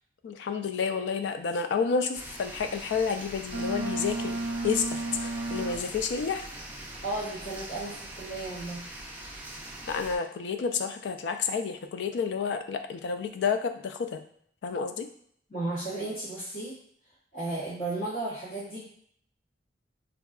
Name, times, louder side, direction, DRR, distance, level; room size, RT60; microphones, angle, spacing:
voice 1, 0.2-6.5 9.9-14.2 14.6-15.1, left 5 dB, 80° left, 8 dB, 0.3 m, -30 dB
sound 1, 2.1-10.2, right 1 dB, 10° right, 0.4 m, -43 dB
Boat Water vehicle, 3.5-6.2, right 2 dB, 70° right, 0.4 m, -33 dB
voice 2, 7.0-8.9 15.5-16.8 17.3-18.9, right 2 dB, 50° left, -10 dB, 1.0 m, -34 dB
3.6 x 2.2 x 2.3 m, 0.63 s
head